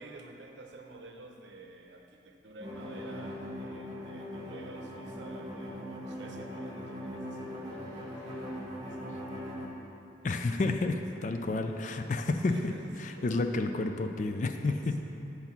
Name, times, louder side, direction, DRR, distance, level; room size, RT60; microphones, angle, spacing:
voice 1, 0.0-9.5 12.4-13.5 14.7-15.0, right 2 dB, 75° right, 2 dB, 0.7 m, -50 dB
sound 1, 2.6-9.7, equal, 20° right, 1.0 m, -40 dB
sound 2, 2.7-4.0 6.4-8.8 10.9-11.3 11.6-12.3, right 1 dB, 10° left, 1.5 m, -56 dB
voice 2, 10.2-12.7 13.0-15.0, left 2 dB, 40° left, 6 dB, 0.3 m, -30 dB
8.0 x 4.0 x 5.8 m, 2.8 s
head